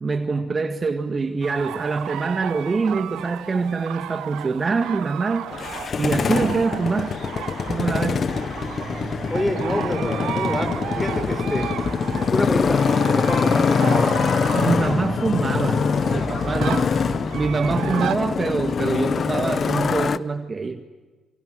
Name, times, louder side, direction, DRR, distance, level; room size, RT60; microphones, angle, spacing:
voice 1, 0.0-5.5 6.0-7.2 7.7-8.3 14.5-16.8 17.3-20.8, right 4 dB, 35° right, 7 dB, 1.8 m, -24 dB
sound 1, 1.4-18.2, right 12 dB, 85° right, 1.1 m, -34 dB
Motorcycle, 5.5-20.2, left 6 dB, 45° left, 0.9 m, -24 dB
sound 2, 7.6-19.9, right 2 dB, 15° right, 4.2 m, -36 dB
voice 2, 9.3-11.7 12.2-14.1 16.4-16.9 17.7-18.1, left 1 dB, 15° left, 7 dB, 5.9 m, -27 dB
27.5 x 24.5 x 7.9 m, 1.3 s
cardioid pair, 90°, 0 cm